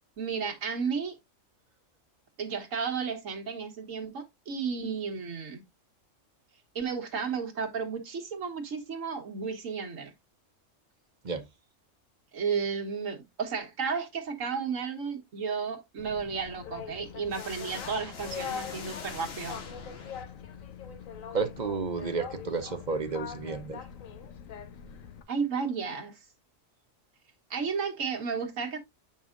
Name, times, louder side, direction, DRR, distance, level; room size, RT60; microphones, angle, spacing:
voice 1, 0.2-1.2 2.4-5.6 6.7-10.1 12.3-19.6 25.3-26.2 27.5-28.8, right 5 dB, 80° right, 1.7 m, -33 dB
Boat Water vehicle, 16.0-25.2, left 8 dB, 90° left, 1.2 m, -42 dB
sound 1, 17.3-20.7, left 4 dB, 50° left, 1.4 m, -43 dB
voice 2, 21.3-23.8, right 4 dB, 40° right, 0.8 m, -31 dB
8.4 x 5.4 x 2.5 m
omnidirectional pair, 1.3 m